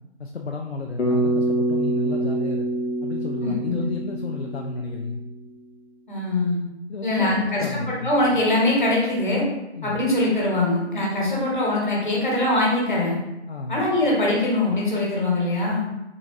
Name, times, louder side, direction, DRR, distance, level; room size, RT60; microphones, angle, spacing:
voice 1, 0.2-2.7 3.0-5.2 6.9-8.1 9.7-10.0 13.5-13.8, left 3 dB, 65° left, 2 dB, 0.5 m, -32 dB
Bass guitar, 1.0-5.4, right 1 dB, 85° left, 0.9 m, -26 dB
voice 2, 3.4-3.8 6.1-6.6 7.0-9.4 9.8-13.2 13.7-15.8, left 2 dB, 45° left, -4 dB, 1.3 m, -22 dB
4.0 x 3.1 x 3.6 m, 0.96 s
figure-of-eight pair, 170°, 35 cm